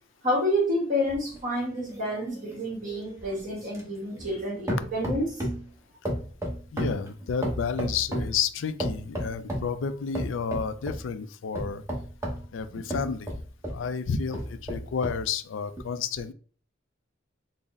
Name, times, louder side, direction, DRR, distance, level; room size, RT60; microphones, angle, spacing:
voice 1, 0.2-5.5, equal, 45° right, -3 dB, 1.3 m, -29 dB
sound 1, 1.1-4.4 4.7-5.7 6.0-8.4 8.8-9.7 10.1-11.0 11.5-13.8 14.3-15.2 15.8-15.9, equal, 15° right, 0.9 m, -33 dB
voice 2, 6.7-11.8 12.5-13.3 13.7-16.3, left 6 dB, 80° left, 11 dB, 0.4 m, -31 dB
4.0 x 2.0 x 3.6 m, 0.42 s
head